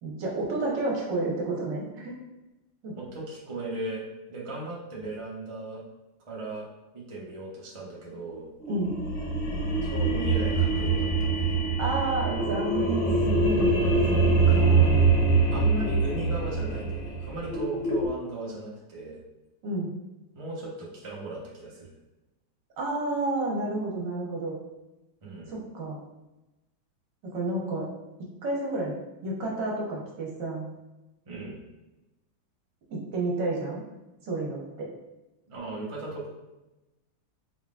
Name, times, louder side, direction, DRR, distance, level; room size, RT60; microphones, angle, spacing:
voice 1, 0.0-2.1 2.8-2.9 8.7-8.9 11.8-13.7 14.1-14.2 14.5-15.1 19.6-19.9 22.8-24.5 25.5-26.0 27.2-27.9 28.4-28.9 29.2-30.7 32.9-33.8 34.2-34.9, right 2 dB, 65° right, -3 dB, 1.5 m, -30 dB
voice 2, 2.9-4.0 4.3-5.8 6.2-6.7 6.9-8.5 9.8-11.6 14.7-14.9 15.5-19.2 20.3-21.9 25.2-25.5 31.2-31.6 35.5-36.3, right 2 dB, 30° right, -5 dB, 0.5 m, -37 dB
sound 1, 8.6-18.1, right 3 dB, 55° left, 0.9 m, -24 dB
4.5 x 3.9 x 2.4 m, 1.0 s
omnidirectional pair, 2.1 m